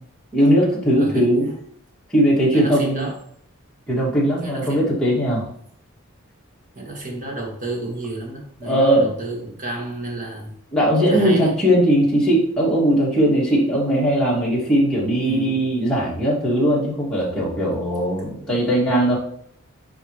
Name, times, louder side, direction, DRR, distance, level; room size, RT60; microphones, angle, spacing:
voice 1, 0.3-1.5 2.1-3.1 3.9-5.5 8.6-9.1 10.7-19.2, equal, 5° left, -7 dB, 2.3 m, -19 dB
voice 2, 1.0-1.6 2.5-3.2 4.4-5.0 6.7-10.5 11.0-11.5 15.2-15.6 17.4-17.5 18.3-18.5, right 2 dB, 40° right, 0 dB, 1.9 m, -31 dB
9.7 x 3.5 x 3.2 m, 0.65 s
head